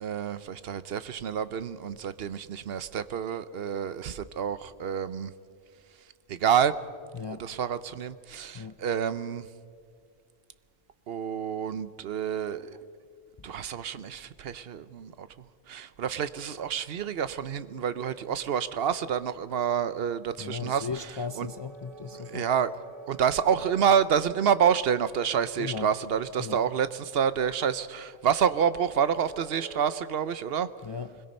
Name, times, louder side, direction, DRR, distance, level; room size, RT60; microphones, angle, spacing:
voice 1, 0.0-5.3 6.3-6.7 7.4-9.5 11.1-12.8 13.4-15.3 15.7-20.9 21.4-21.5 22.3-22.7 23.1-30.7, right 8 dB, 70° right, 0.9 m, -28 dB
voice 2, 7.1-7.4 8.5-8.8 20.4-22.4 25.6-25.9 26.4-26.6 30.8-31.2, left 5 dB, 35° left, 0.4 m, -36 dB
sound 1, 17.9-19.6 20.6-26.6 28.1-30.0, right 3 dB, ahead, 5.2 m, -49 dB
24.5 x 21.0 x 5.3 m
omnidirectional pair, 1.1 m